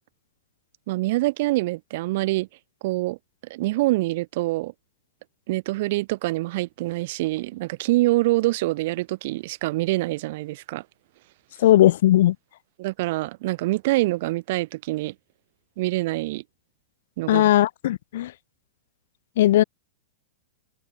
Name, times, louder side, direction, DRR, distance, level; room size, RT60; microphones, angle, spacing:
voice 1, 0.9-2.5 2.8-3.2 3.5-4.7 5.5-10.8 12.8-15.1 15.8-16.4 17.2-17.5, right 19 dB, 45° right, 7.6 m, -25 dB
voice 2, 11.6-12.3 17.3-18.3 19.4-19.6, left 13 dB, 60° left, 1.4 m, -18 dB
supercardioid pair, 165°, 0 cm